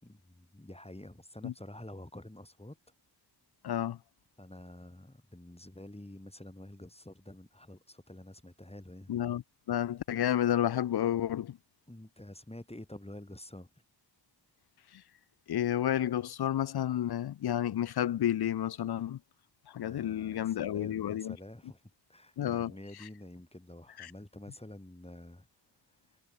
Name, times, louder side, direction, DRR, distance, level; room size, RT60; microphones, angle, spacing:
voice 1, 0.0-2.8 4.4-9.1 11.9-13.7 19.8-21.8 22.1-25.5, left 1 dB, 15° left, 4.7 m, -48 dB
voice 2, 3.6-4.0 9.1-9.4 9.7-11.6 15.5-19.2 19.7-21.4 22.4-22.7 24.0-24.1, left 11 dB, 55° left, 0.5 m, -31 dB
cardioid pair, 40°, 46 cm